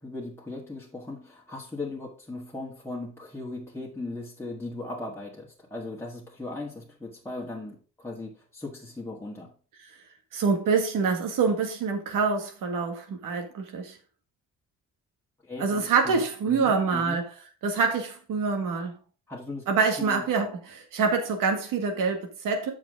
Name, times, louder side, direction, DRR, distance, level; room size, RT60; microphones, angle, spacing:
voice 1, 0.0-9.5 15.4-17.2 19.3-19.7 20.0-20.3, left 2 dB, 10° left, 1.7 m, -38 dB
voice 2, 10.3-14.0 15.6-17.3 17.6-19.0 19.7-22.7, right 5 dB, 85° right, 1.8 m, -26 dB
7.6 x 6.3 x 3.7 m
cardioid pair, 110°, 32 cm